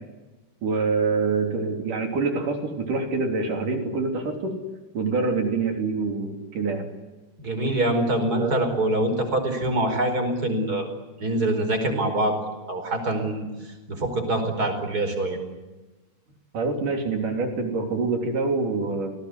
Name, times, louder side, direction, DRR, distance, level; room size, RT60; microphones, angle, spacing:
voice 1, 0.6-4.6 4.9-6.9 8.4-8.6 16.5-19.1, right 4 dB, 55° right, 4 dB, 4.8 m, -26 dB
voice 2, 7.4-10.9 11.2-12.3 12.7-13.5 13.9-15.4, right 1 dB, 20° right, 6 dB, 5.1 m, -24 dB
29.5 x 19.0 x 9.7 m, 1.2 s
omnidirectional pair, 4.7 m